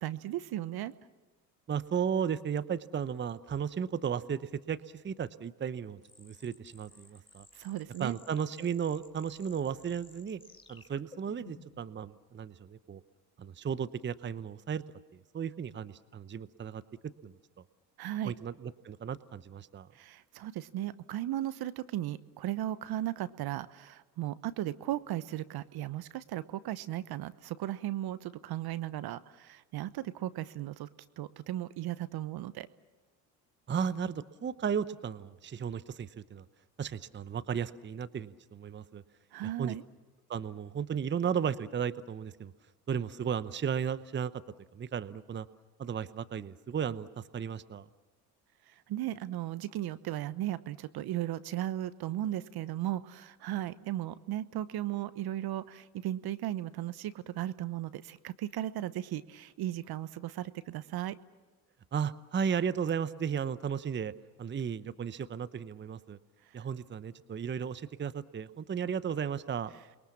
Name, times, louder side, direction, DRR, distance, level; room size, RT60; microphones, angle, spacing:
voice 1, 0.0-0.9 7.5-8.2 18.0-18.4 19.9-30.9 31.2-32.7 39.3-39.8 48.7-61.1, right 13 dB, 50° right, 15 dB, 1.0 m, -36 dB
voice 2, 1.7-4.8 5.0-7.5 8.0-10.4 10.7-13.0 13.4-14.8 15.3-16.8 17.2-17.3 18.2-19.9 33.7-36.4 36.8-39.0 39.4-39.8 40.3-42.5 42.9-44.3 44.7-45.5 45.8-47.9 61.9-64.1 64.4-66.2 66.5-69.7, right 7 dB, 25° right, 15 dB, 0.9 m, -34 dB
sound 1, 6.0-11.9, left 3 dB, 10° left, 3.7 m, -56 dB
29.0 x 22.0 x 7.2 m, 1.2 s
hypercardioid pair, 65°, 47 cm